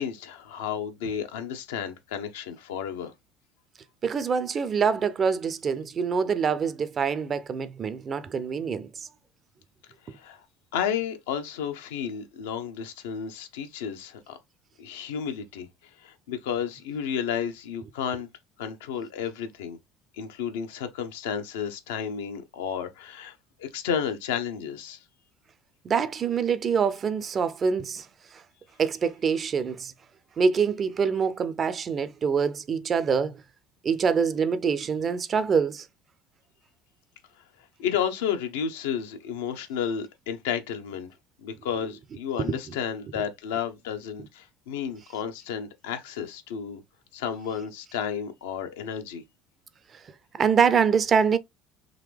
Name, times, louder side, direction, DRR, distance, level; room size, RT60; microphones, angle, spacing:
voice 1, 0.0-3.1 10.0-10.4 10.7-14.4 14.8-18.3 18.6-19.8 20.1-25.0 37.8-46.8 47.1-49.2, left 8 dB, 80° left, 0.7 m, -32 dB
voice 2, 4.0-9.1 25.8-28.1 28.3-28.4 28.8-29.9 30.4-33.4 33.8-35.9 42.4-42.6 50.3-51.4, right 6 dB, 40° right, 0.5 m, -25 dB
3.8 x 2.8 x 3.3 m
hypercardioid pair, 75°, 0 cm